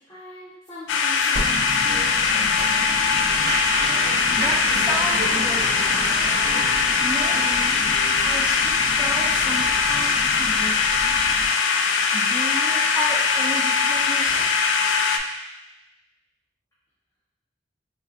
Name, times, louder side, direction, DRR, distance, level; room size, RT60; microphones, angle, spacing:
voice 1, 0.1-2.1, equal, 20° left, -12 dB, 0.8 m, -40 dB
sound 1, 0.9-15.2, left 5 dB, 90° left, 0.3 m, -21 dB
Applause, 1.3-11.5, right 1 dB, 55° right, 0.7 m, -32 dB
voice 2, 4.3-5.7 7.0-7.8 8.2-11.0 12.1-14.7, right 1 dB, 5° right, -3 dB, 0.3 m, -33 dB
Gunshot gunfire, 9.2-11.0 14.2-14.4, right 1 dB, 75° right, 1.1 m, -42 dB
4.1 x 2.6 x 2.4 m, 0.93 s
head